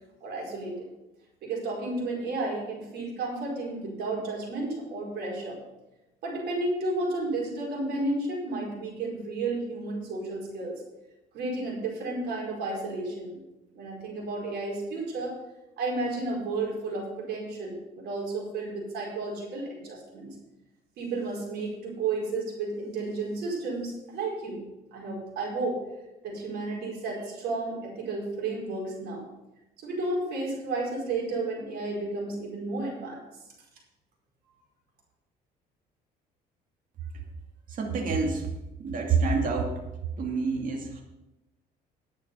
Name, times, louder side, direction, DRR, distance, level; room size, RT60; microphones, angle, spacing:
voice 1, 0.2-0.9 1.4-5.6 6.2-10.8 11.3-13.4 13.7-15.4 15.8-20.3 21.0-24.6 24.9-25.8 26.2-29.2 29.8-33.4, right 2 dB, 75° right, -2 dB, 4.9 m, -32 dB
voice 2, 37.7-38.5 38.8-39.8 40.2-41.0, right 4 dB, 50° right, 1 dB, 2.3 m, -27 dB
10.5 x 8.7 x 5.6 m, 0.97 s
cardioid pair, 110°, 17 cm